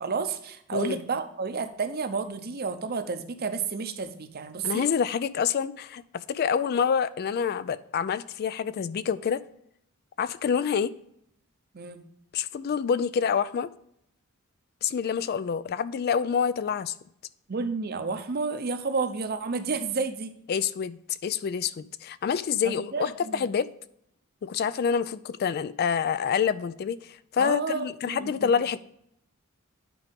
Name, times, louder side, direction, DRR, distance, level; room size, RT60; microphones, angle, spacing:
voice 1, 0.0-4.9 11.7-12.0 17.5-20.3 22.6-23.5 27.4-28.5, right 4 dB, 45° right, 0.7 m, -31 dB
voice 2, 4.6-9.4 10.2-10.9 12.3-13.7 14.8-16.9 20.5-23.7 24.4-28.8, left 7 dB, 45° left, 0.3 m, -27 dB
9.2 x 5.0 x 3.5 m
head